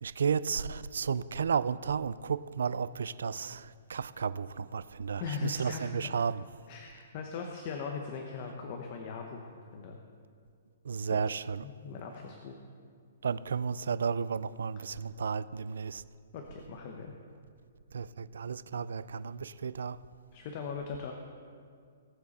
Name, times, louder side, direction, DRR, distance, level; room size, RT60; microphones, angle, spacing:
voice 1, 0.0-6.4 10.8-11.6 13.2-16.0 17.9-20.0, right 6 dB, 85° right, 0.4 m, -33 dB
voice 2, 5.2-6.2 6.7-9.4 9.7-10.0 11.1-11.2 11.6-12.5 16.3-17.1 20.3-21.1, left 5 dB, 30° left, 0.9 m, -39 dB
19.0 x 7.7 x 4.2 m
hypercardioid pair, 175°, 0 cm